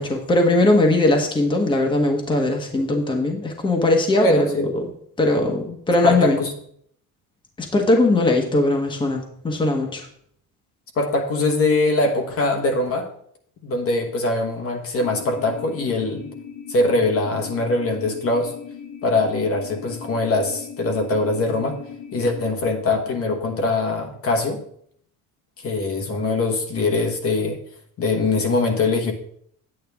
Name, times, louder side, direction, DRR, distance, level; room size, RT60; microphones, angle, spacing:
voice 1, 0.0-4.9 5.2-6.4 7.6-10.1, left 2 dB, 10° left, 2 dB, 1.1 m, -20 dB
voice 2, 4.2-4.7 6.0-6.5 10.9-13.1 13.6-16.3 16.7-18.5 19.0-21.8 22.1-24.6 25.6-27.6 28.0-29.1, left 2 dB, 35° left, 4 dB, 1.2 m, -22 dB
sound 1, 15.0-22.5, left 7 dB, 90° left, 2.6 m, -38 dB
9.8 x 8.9 x 3.5 m, 0.66 s
cardioid pair, 160°, 38 cm